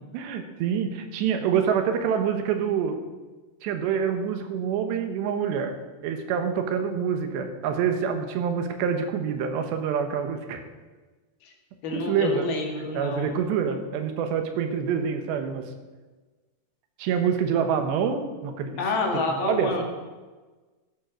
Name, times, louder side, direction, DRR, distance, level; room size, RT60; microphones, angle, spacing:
voice 1, 0.1-3.0 3.6-5.7 6.0-10.6 11.9-12.5 12.9-15.7 17.0-18.8 19.4-19.7, right 7 dB, 90° right, 7 dB, 3.5 m, -26 dB
voice 2, 11.8-13.3 18.8-19.8, left 2 dB, 65° left, 1 dB, 4.0 m, -28 dB
14.5 x 9.3 x 6.4 m, 1.3 s
omnidirectional pair, 4.8 m